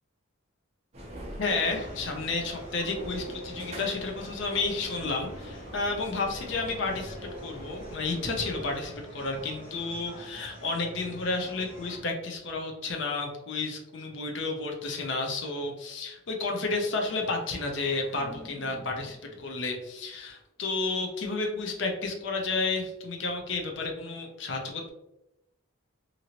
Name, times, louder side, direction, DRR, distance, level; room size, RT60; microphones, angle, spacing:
sound 1, 0.9-8.7, right 1 dB, 30° right, 0.6 m, -42 dB
voice 1, 1.4-24.9, left 3 dB, 60° left, 2 dB, 0.5 m, -31 dB
sound 2, 1.6-12.0, equal, 40° left, 0.9 m, -46 dB
Engine starting, 17.1-20.1, equal, 10° left, 0.9 m, -50 dB
2.8 x 2.6 x 2.8 m, 0.89 s
head